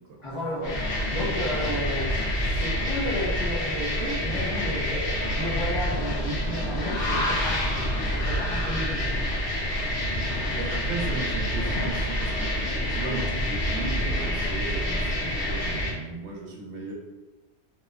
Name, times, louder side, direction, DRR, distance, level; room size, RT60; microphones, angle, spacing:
voice 1, 0.2-5.0 5.4-9.1, left 1 dB, 30° left, -11 dB, 0.7 m, -33 dB
sound 1, 0.6-15.9, equal, 80° left, 1.0 m, -27 dB
voice 2, 10.5-12.5 12.9-16.9, right 3 dB, 85° right, -1 dB, 0.9 m, -36 dB
2.7 x 2.1 x 2.4 m, 1.1 s
omnidirectional pair, 1.2 m